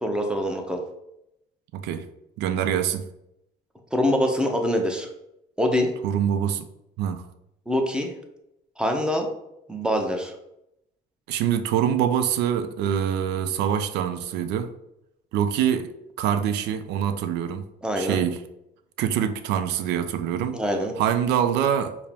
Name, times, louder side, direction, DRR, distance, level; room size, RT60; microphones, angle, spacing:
voice 1, 0.0-0.8 3.9-5.1 5.6-5.9 7.7-8.1 8.8-9.3 9.7-10.3 17.8-18.2 20.5-20.9, equal, 5° right, 0.6 m, -24 dB
voice 2, 1.7-2.1 2.4-3.1 6.0-6.7 7.0-7.2 11.3-14.7 15.3-15.9 16.2-17.7 18.0-18.4 19.0-20.6 21.0-22.0, right 9 dB, 85° right, 0.4 m, -24 dB
4.7 x 2.0 x 3.4 m
cardioid pair, 110°, 17 cm